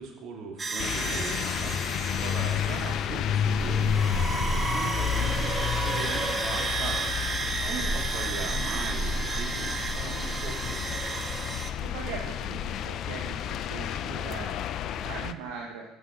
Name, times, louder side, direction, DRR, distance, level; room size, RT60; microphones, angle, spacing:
voice 1, 0.0-5.5 5.8-7.0 7.6-10.8, right 4 dB, 60° right, 0 dB, 2.6 m, -39 dB
sound 1, 0.6-11.7, right 3 dB, 30° right, 0.9 m, -32 dB
sound 2, 0.8-15.3, left 9 dB, 55° left, 0.5 m, -31 dB
voice 2, 7.5-8.0 11.8-14.6 15.0-15.8, right 6 dB, 75° right, 0 dB, 1.2 m, -40 dB
16.0 x 7.2 x 3.8 m, 1.1 s
hypercardioid pair, 65°, 0 cm